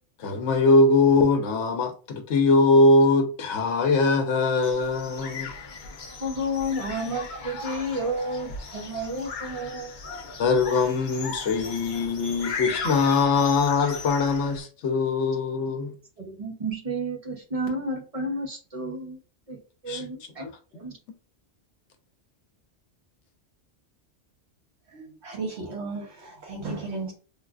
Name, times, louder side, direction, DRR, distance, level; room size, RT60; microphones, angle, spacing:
voice 1, 0.2-5.5 10.4-15.9 19.9-20.0 20.4-20.5, left 3 dB, 80° left, 0.9 m, -22 dB
sound 1, 4.6-14.6, left 4 dB, 50° left, 0.6 m, -37 dB
voice 2, 6.2-9.9 16.2-19.2 19.5-19.6 19.8-20.9, equal, 35° right, 0.7 m, -31 dB
voice 3, 24.9-27.1, right 3 dB, 70° right, 1.1 m, -34 dB
3.3 x 2.3 x 2.3 m
omnidirectional pair, 1.2 m